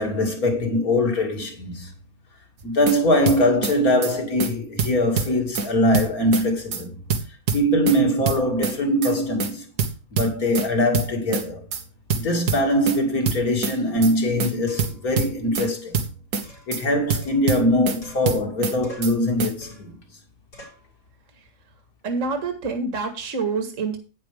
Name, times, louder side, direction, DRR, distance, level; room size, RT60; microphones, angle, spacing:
voice 1, 0.0-1.9 2.6-6.9 7.5-9.7 10.1-11.7 12.1-16.0 16.7-19.9, left 1 dB, 65° left, 3.0 m, -22 dB
sound 1, 2.6-3.0 3.3-3.7 4.0-4.1 4.4-4.5 4.8-5.7 5.9-6.4 6.7-6.8 7.1-8.0 8.3-8.7 9.0-9.1 9.4-9.5 9.8-10.7 10.9-11.4 11.7-11.8 12.1-13.0 13.3-13.7 14.0-14.1 14.4-14.5 14.8-15.7 15.9-16.4 16.7-16.8 17.1-18.0 18.3-18.7 19.0-19.1 19.4-19.5, right 5 dB, 85° right, 2.0 m, -25 dB
sound 2, 14.0-14.1 14.7-15.1 15.6-15.8 16.4-17.7 18.0-18.5 18.8-19.2 19.6-20.0 20.5-20.9, equal, 80° left, 5.6 m, -46 dB
voice 2, 22.0-24.0, right 4 dB, 50° right, 2.0 m, -26 dB
11.0 x 9.6 x 3.5 m
omnidirectional pair, 1.7 m